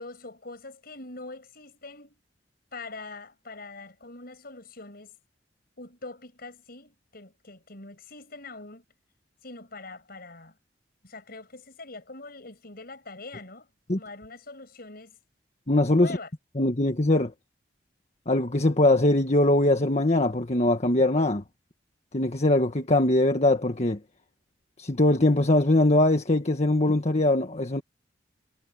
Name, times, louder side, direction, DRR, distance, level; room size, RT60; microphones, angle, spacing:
voice 1, 0.0-2.2 2.7-5.2 5.8-8.8 9.4-10.6 11.0-15.2 15.9-16.3, left 3 dB, 60° left, 7.1 m, -43 dB
voice 2, 15.7-16.2 16.5-17.3 18.3-21.4 22.1-24.0 24.8-27.8, left 1 dB, 40° left, 1.6 m, -22 dB
head